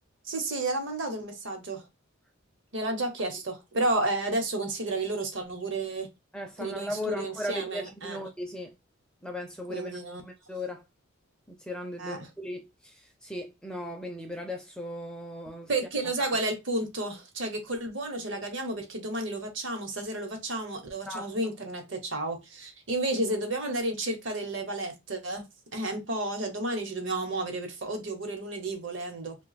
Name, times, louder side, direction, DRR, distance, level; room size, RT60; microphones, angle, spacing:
voice 1, 0.3-1.8 2.7-6.1 6.6-8.2 9.7-10.2 12.0-12.2 15.7-25.4 25.7-29.4, right 2 dB, 60° right, 1.0 m, -31 dB
voice 2, 6.3-8.7 9.2-10.8 11.5-15.7 16.2-16.4 21.1-21.3, left 1 dB, 5° left, 0.4 m, -37 dB
2.7 x 2.3 x 4.0 m
head